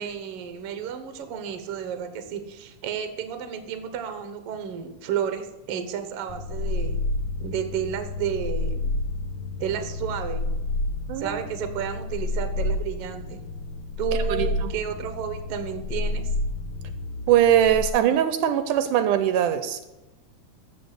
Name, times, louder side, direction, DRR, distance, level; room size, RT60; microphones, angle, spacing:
voice 1, 0.0-7.0 7.4-8.9 9.6-10.5 11.2-13.5 14.0-16.3, right 8 dB, 60° right, 9 dB, 1.8 m, -32 dB
sound 1, 6.3-17.9, left 2 dB, 60° left, 1.8 m, -30 dB
voice 2, 11.1-11.4 14.3-14.7 17.3-19.9, right 10 dB, 80° right, 11 dB, 2.2 m, -21 dB
14.0 x 5.0 x 8.1 m, 1.0 s
omnidirectional pair, 3.7 m